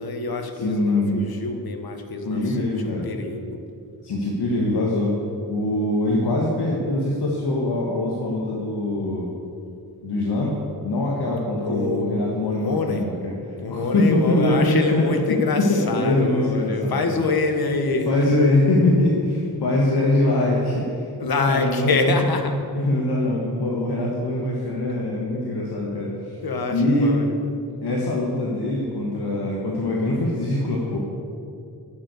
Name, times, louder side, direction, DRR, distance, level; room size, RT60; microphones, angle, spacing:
voice 1, 0.0-3.6 11.7-12.2 12.5-13.0 13.6-18.4 21.2-22.5 26.4-27.5, left 3 dB, 65° left, 5 dB, 1.4 m, -26 dB
voice 2, 0.6-1.2 2.3-3.1 4.0-5.1 5.5-9.3 10.0-10.5 10.8-13.3 13.7-17.2 18.1-21.1 21.4-22.1 22.8-26.4 26.7-27.1 27.8-31.0, left 1 dB, 85° left, -3 dB, 1.7 m, -23 dB
11.0 x 7.5 x 8.3 m, 2.5 s
wide cardioid pair, 160°, 39 cm